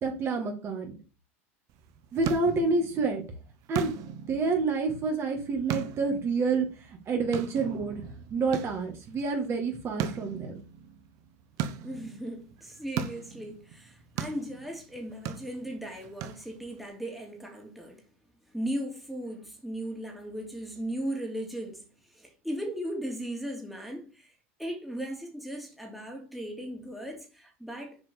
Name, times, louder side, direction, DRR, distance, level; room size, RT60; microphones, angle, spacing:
voice 1, 0.0-1.0 2.1-3.2 3.7-3.9 4.3-6.7 7.1-8.0 8.3-10.5, right 4 dB, 35° right, 2.1 m, -28 dB
sound 1, 1.7-16.9, right 8 dB, 55° right, 1.1 m, -39 dB
voice 2, 11.8-18.0 18.5-21.9 22.1-24.3 24.6-28.0, equal, ahead, 2.5 m, -37 dB
7.3 x 4.4 x 6.8 m
hypercardioid pair, 105°, 7 cm